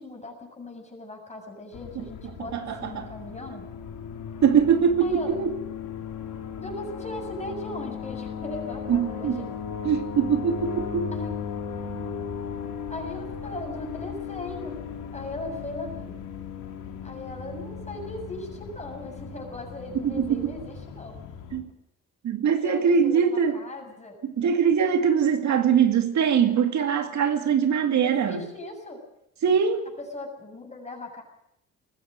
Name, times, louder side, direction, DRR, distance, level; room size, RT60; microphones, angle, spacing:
voice 1, 0.0-3.7 5.0-5.4 6.6-9.5 11.1-11.3 12.9-14.8 15.1-16.2 17.0-21.2 22.6-24.2 28.0-29.0 30.0-31.2, left 1 dB, 20° left, 7.3 m, -38 dB
sound 1, 1.7-21.6, left 7 dB, 85° left, 3.0 m, -37 dB
voice 2, 2.2-3.1 4.4-5.5 8.9-9.5 9.8-11.1 20.0-20.5 21.5-21.7 22.2-23.6 24.2-28.4 29.4-29.8, right 7 dB, 65° right, 2.3 m, -22 dB
20.5 x 15.0 x 8.9 m
cardioid pair, 90°, 30 cm